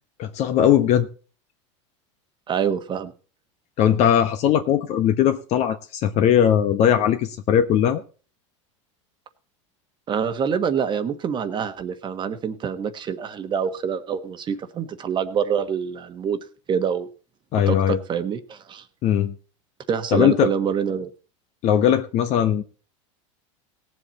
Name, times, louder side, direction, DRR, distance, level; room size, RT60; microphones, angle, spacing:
voice 1, 0.2-1.1 3.8-8.0 17.5-18.0 19.0-19.3 20.1-20.5 21.6-22.6, left 10 dB, 45° left, 8 dB, 1.2 m, -19 dB
voice 2, 2.5-3.1 10.1-16.4 16.7-17.1 17.7-18.8 19.9-21.1, right 7 dB, 30° right, 10 dB, 1.4 m, -26 dB
17.5 x 7.8 x 4.2 m, 0.36 s
supercardioid pair, 125°, 16 cm